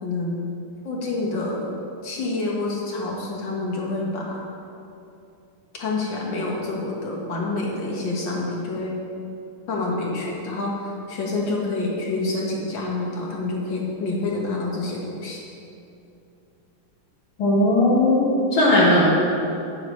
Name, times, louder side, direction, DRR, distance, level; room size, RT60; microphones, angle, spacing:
voice 1, 0.0-0.4 0.8-1.7 2.0-4.4 5.8-8.9 9.7-15.4, left 2 dB, 60° left, -2 dB, 2.2 m, -27 dB
voice 2, 17.4-19.1, left 1 dB, 80° left, -8 dB, 2.4 m, -17 dB
12.5 x 8.7 x 3.2 m, 2.7 s
omnidirectional pair, 2.3 m